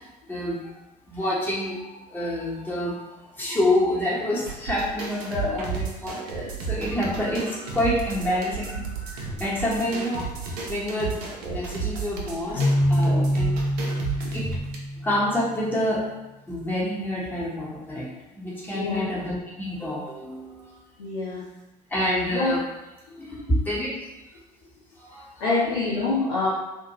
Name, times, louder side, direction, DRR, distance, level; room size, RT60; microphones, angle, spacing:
voice 1, 0.3-0.7 1.1-13.6 14.3-14.5 15.0-16.0 16.5-18.1 18.3-20.8 21.9-22.6 23.2-24.1 25.0-25.2, left 1 dB, 10° left, -7 dB, 1.0 m, -28 dB
sound 1, 4.5-14.8, right 5 dB, 70° right, 0.5 m, -33 dB
Keyboard (musical), 12.5-15.4, equal, 35° left, 0.9 m, -24 dB
voice 2, 18.7-19.1 21.0-21.4 22.3-22.6 23.1-23.2 25.4-26.5, left 3 dB, 70° left, -7 dB, 0.6 m, -26 dB
2.5 x 2.1 x 2.9 m, 1.0 s
figure-of-eight pair, 55°, 21 cm